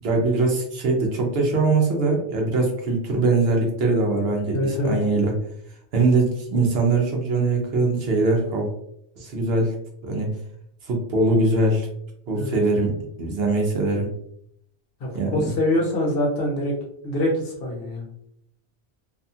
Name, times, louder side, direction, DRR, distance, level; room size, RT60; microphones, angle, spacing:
voice 1, 0.0-5.3 5.9-8.7 9.2-9.7 10.0-10.3 10.8-11.9 12.3-14.1 15.1-15.5, right 3 dB, 65° right, 1 dB, 0.8 m, -22 dB
voice 2, 4.5-5.0 12.3-12.6 15.0-16.7 17.0-18.0, left 1 dB, 60° left, -1 dB, 1.0 m, -24 dB
2.7 x 2.3 x 2.6 m, 0.71 s
omnidirectional pair, 1.2 m